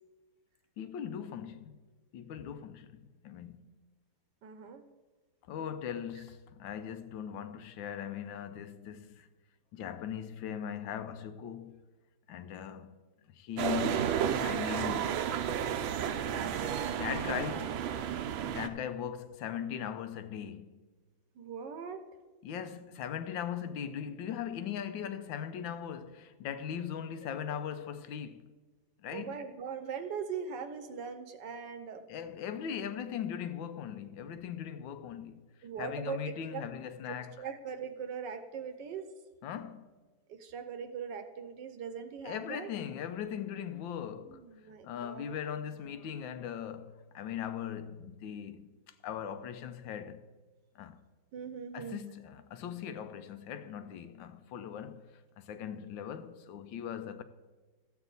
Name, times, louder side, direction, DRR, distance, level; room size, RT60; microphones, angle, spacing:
voice 1, 0.8-1.8 2.1-3.7 5.5-9.3 9.7-11.8 12.3-13.0 13.3-15.2 17.0-17.8 18.4-20.8 22.4-28.5 29.0-29.5 32.1-35.4 35.8-37.5 39.4-39.9 42.2-50.3 50.7-51.0 51.7-55.1 55.4-57.2, left 8 dB, 75° left, 1.4 m, -39 dB
voice 2, 4.4-4.8 6.2-6.3 21.3-22.1 29.1-32.0 35.6-36.6 37.1-39.1 40.3-42.7 44.3-45.3 51.3-52.0, right 6 dB, 70° right, 1.3 m, -41 dB
sound 1, 13.6-18.7, right 9 dB, 90° right, 1.4 m, -32 dB
13.0 x 8.2 x 4.0 m
omnidirectional pair, 2.1 m